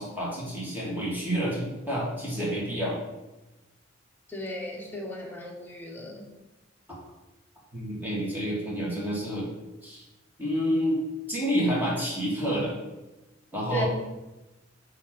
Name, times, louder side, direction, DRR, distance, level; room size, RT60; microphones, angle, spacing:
voice 1, 0.0-3.0 6.9-7.0 7.7-9.5 9.8-10.0 10.4-11.0 11.3-12.8 13.5-13.9, equal, 10° right, -6 dB, 2.4 m, -29 dB
voice 2, 4.3-6.3 13.7-13.9, equal, 10° left, -1 dB, 1.3 m, -36 dB
8.4 x 3.6 x 5.4 m, 1.1 s
head